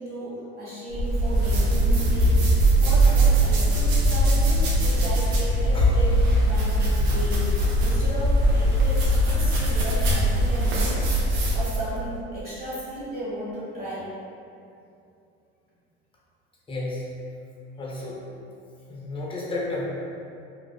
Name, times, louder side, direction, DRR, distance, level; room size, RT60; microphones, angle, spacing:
voice 1, 0.0-2.5 2.8-11.1 11.5-14.1, right 1 dB, 30° right, -9 dB, 1.2 m, -34 dB
sound 1, 0.9-11.9, right 1 dB, 80° right, 0.6 m, -21 dB
voice 2, 16.7-17.1 17.8-18.2 18.9-19.9, left 2 dB, 15° left, -5 dB, 0.7 m, -32 dB
2.5 x 2.4 x 2.3 m, 2.6 s
hypercardioid pair, 75°, 31 cm